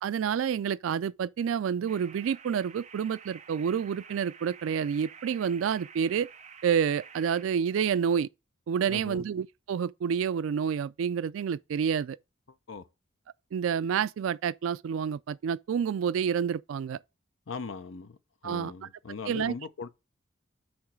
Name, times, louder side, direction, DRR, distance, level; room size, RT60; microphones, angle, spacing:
voice 1, 0.0-6.3 6.6-8.3 8.7-12.2 13.5-17.0 18.4-18.7 19.3-19.5, right 7 dB, 90° right, 0.3 m, -29 dB
sound 1, 1.9-7.4, right 6 dB, 35° right, 0.6 m, -50 dB
voice 2, 8.9-9.2 12.7-12.9 17.5-18.2 18.4-19.9, left 5 dB, 80° left, 0.7 m, -39 dB
8.6 x 3.1 x 6.0 m
head